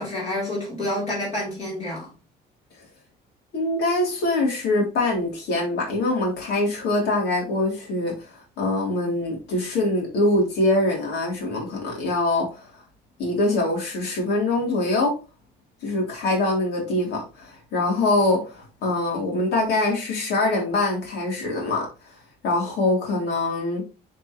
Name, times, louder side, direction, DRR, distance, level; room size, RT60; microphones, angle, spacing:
voice 1, 0.0-2.1, left 1 dB, 40° left, 3.7 m, -28 dB
voice 2, 3.5-12.7 13.2-15.2 15.8-22.1 22.4-23.8, left 2 dB, 70° left, 3.4 m, -24 dB
10.5 x 4.7 x 3.1 m
cardioid pair, 150°, 18 cm